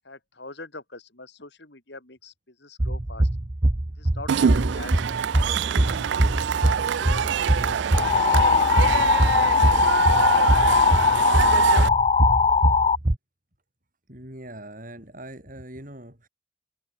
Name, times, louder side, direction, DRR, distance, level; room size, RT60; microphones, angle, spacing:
voice 1, 0.0-3.3 4.0-6.1 6.3-7.8 8.3-9.9, left 2 dB, 55° left, 3.0 m, -43 dB
sound 1, 2.8-13.1, right 1 dB, 25° right, 0.8 m, -24 dB
Cheering / Crowd, 4.3-11.9, right 8 dB, 60° right, 0.3 m, -25 dB
sound 2, 7.9-13.0, left 5 dB, 30° left, 0.4 m, -20 dB
voice 2, 14.1-16.3, right 1 dB, 40° right, 5.2 m, -41 dB
head